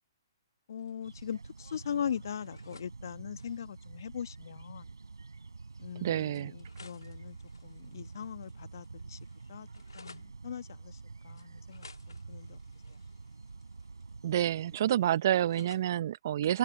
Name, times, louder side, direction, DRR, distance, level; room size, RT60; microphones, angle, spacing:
voice 1, 0.7-4.8 5.8-7.4 7.6-9.2 9.5-9.7 9.9-11.0 11.2-12.6, left 8 dB, 60° left, 1.2 m, -40 dB
sound 1, 0.8-1.5 1.7-2.9 3.2-3.7 4.8-4.9 5.2-5.3 6.3-8.6 8.8-10.3 11.4-14.2 14.4-15.9, left 4 dB, 80° left, 2.6 m, -58 dB
sound 2, 1.0-14.8, right 4 dB, 80° right, 4.1 m, -48 dB
voice 2, 6.0-6.5 14.2-16.6, right 11 dB, 50° right, 0.6 m, -28 dB
figure-of-eight pair, 125°, 2 cm